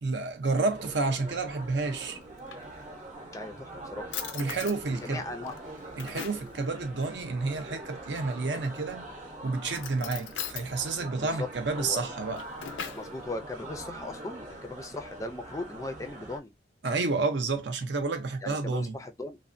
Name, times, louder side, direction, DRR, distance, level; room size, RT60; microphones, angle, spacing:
voice 1, 0.0-2.2 4.3-5.3 6.0-9.1 9.4-12.4 16.8-19.0, right 3 dB, 70° right, 0.6 m, -30 dB
sound 1, 0.7-16.4, right 1 dB, 40° right, 0.7 m, -44 dB
Drawer open or close, 2.2-3.2 3.7-3.8 4.1-4.8 5.4-6.5 8.4-8.9 9.7-10.7 12.1-13.1, left 8 dB, 85° left, 0.4 m, -40 dB
voice 2, 3.3-4.1 4.9-5.5 11.1-11.5 11.8-12.0 12.9-16.5 18.4-19.4, left 2 dB, 15° left, 0.4 m, -38 dB
3.2 x 2.1 x 2.5 m
head